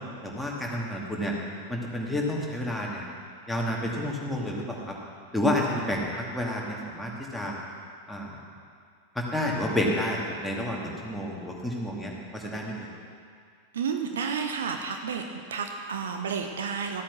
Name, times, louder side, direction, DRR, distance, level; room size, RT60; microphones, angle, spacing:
voice 1, 0.2-1.3 1.7-3.0 3.5-4.9 5.3-7.5 8.1-8.3 9.1-12.9, left 1 dB, ahead, -3 dB, 2.3 m, -30 dB
voice 2, 13.7-15.2 15.5-17.0, right 6 dB, 65° right, 4 dB, 0.9 m, -31 dB
14.5 x 8.6 x 6.2 m, 2.2 s
figure-of-eight pair, 90°, 0 cm